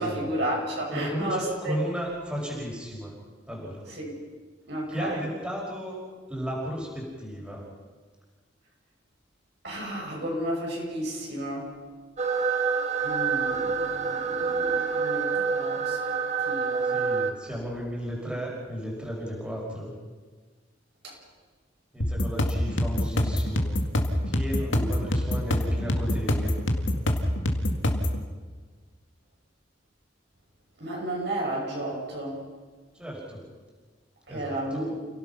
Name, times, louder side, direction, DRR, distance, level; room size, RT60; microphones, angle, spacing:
voice 1, 0.0-1.8 3.9-4.1 4.7-5.2 9.6-11.7 13.0-16.2 16.5-16.9 21.0-21.2 24.7-25.0 30.8-32.4 34.3-34.9, right 1 dB, 60° right, -2 dB, 6.5 m, -32 dB
voice 2, 0.9-3.1 3.5-3.9 4.9-6.0 6.3-7.7 16.8-19.9 21.9-23.7 24.3-26.5 32.9-33.4 34.3-34.8, equal, 5° right, -4 dB, 5.3 m, -34 dB
sound 1, 12.2-17.3, right 5 dB, 40° right, 1.3 m, -27 dB
sound 2, 22.0-28.2, left 1 dB, 85° left, 2.2 m, -25 dB
30.0 x 17.5 x 5.9 m, 1.4 s
head